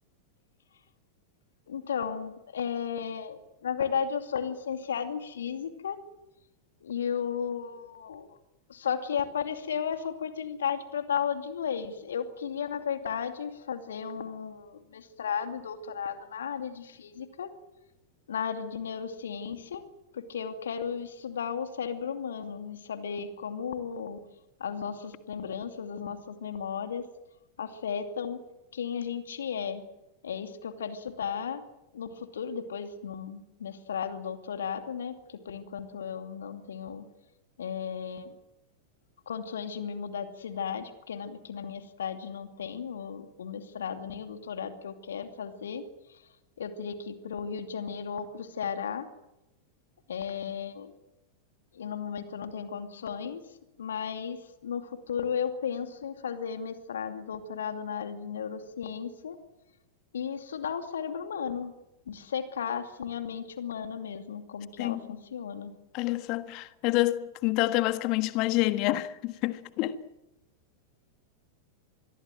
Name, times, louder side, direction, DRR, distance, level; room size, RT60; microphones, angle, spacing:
voice 1, 1.7-6.0 6.8-8.2 8.7-17.5 18.3-19.8 20.1-24.2 24.6-27.0 27.6-28.4 28.7-29.8 30.2-31.6 31.9-37.1 37.6-38.3 39.3-45.8 46.6-49.1 50.1-50.9 51.7-53.4 53.8-54.4 54.6-59.4 60.1-61.7 62.1-65.7, left 7 dB, 65° left, 2.6 m, -34 dB
voice 2, 64.8-65.2 65.9-70.0, left 17 dB, 40° left, 1.5 m, -28 dB
25.0 x 21.5 x 7.7 m
figure-of-eight pair, 90°, 0 cm